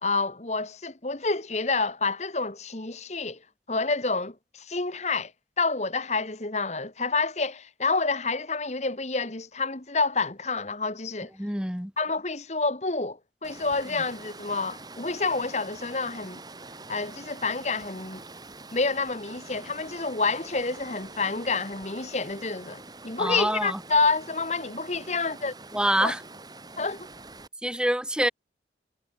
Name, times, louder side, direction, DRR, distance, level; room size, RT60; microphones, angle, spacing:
voice 1, 0.0-3.4 3.7-5.3 5.6-11.3 12.0-16.4 16.9-18.2 18.7-25.5 26.0-26.1 26.8-27.1, left 3 dB, 40° left, 1.6 m, -28 dB
voice 2, 11.4-11.9 23.2-23.8 25.7-26.2 27.6-28.3, right 1 dB, 5° right, 2.4 m, -26 dB
Water, 13.4-27.5, right 3 dB, 20° right, 8.0 m, -45 dB
head